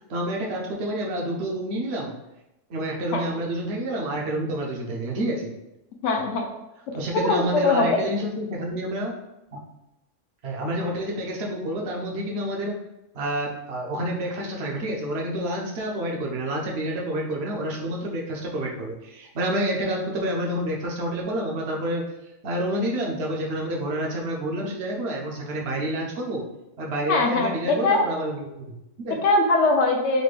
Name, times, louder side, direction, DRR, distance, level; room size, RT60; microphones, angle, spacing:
voice 1, 0.1-2.1 2.7-5.5 6.9-9.1 9.5-9.6 10.4-12.8 13.1-22.0 22.4-26.4 26.8-29.1, right 1 dB, 60° right, -1 dB, 0.9 m, -28 dB
voice 2, 6.0-6.5 7.1-8.0 27.1-28.0 29.2-30.2, left 3 dB, 70° left, 2 dB, 0.9 m, -21 dB
4.1 x 2.1 x 3.2 m, 0.92 s
omnidirectional pair, 1.3 m